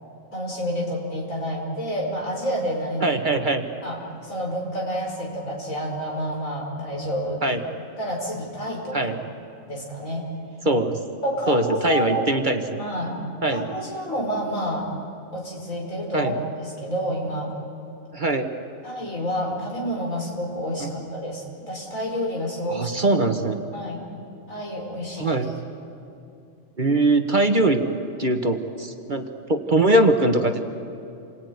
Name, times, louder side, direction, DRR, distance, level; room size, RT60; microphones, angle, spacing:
voice 1, 0.3-3.2 3.8-7.4 8.0-9.1 9.7-10.2 11.2-12.2 12.8-13.2 13.5-14.9 15.3-17.5 18.8-23.2 23.7-24.0 24.5-25.4, equal, 80° left, -1 dB, 5.7 m, -29 dB
voice 2, 3.0-3.7 7.4-7.6 8.9-9.2 10.6-11.0 11.5-12.8 13.4-13.7 16.1-16.3 18.1-18.5 20.8-20.9 22.7-23.6 25.2-25.5 26.8-27.8 28.2-30.6, right 2 dB, 40° right, 5 dB, 1.4 m, -21 dB
28.5 x 21.5 x 9.6 m, 2.8 s
omnidirectional pair, 1.4 m